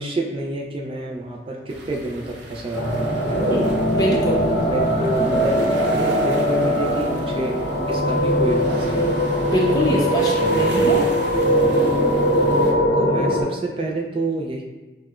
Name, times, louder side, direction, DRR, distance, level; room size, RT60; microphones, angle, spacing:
voice 1, 0.0-3.0 3.3-3.5 4.6-7.6 7.9-9.3 10.4-11.0 12.9-14.6, right 2 dB, 30° right, 1 dB, 0.3 m, -28 dB
sound 1, 1.7-12.7, right 2 dB, 90° right, 0.6 m, -38 dB
sound 2, 2.7-13.4, equal, 55° left, 0.7 m, -20 dB
voice 2, 3.4-4.5 9.4-11.0, left 1 dB, 20° left, -3 dB, 0.7 m, -23 dB
6.0 x 2.2 x 2.4 m, 1.2 s
head